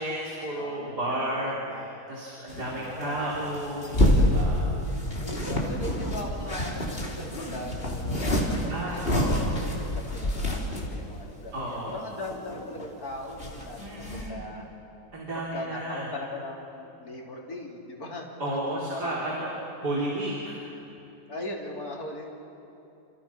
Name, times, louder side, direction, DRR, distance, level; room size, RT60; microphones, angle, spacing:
voice 1, 0.0-4.7 8.7-9.5 11.5-12.0 13.8-14.4 15.1-16.1 18.4-19.5 19.8-20.6, right 1 dB, 90° right, -4 dB, 4.3 m, -32 dB
voice 2, 0.6-1.9 2.6-3.3 4.6-14.7 15.5-19.5 21.3-22.3, left 1 dB, 65° left, -1 dB, 4.0 m, -40 dB
sound 1, 2.5-10.9 11.5-11.6 11.9-12.9 13.1-14.3, left 1 dB, 35° left, 3.5 m, -27 dB
29.0 x 29.0 x 5.8 m, 2.9 s
omnidirectional pair, 1.7 m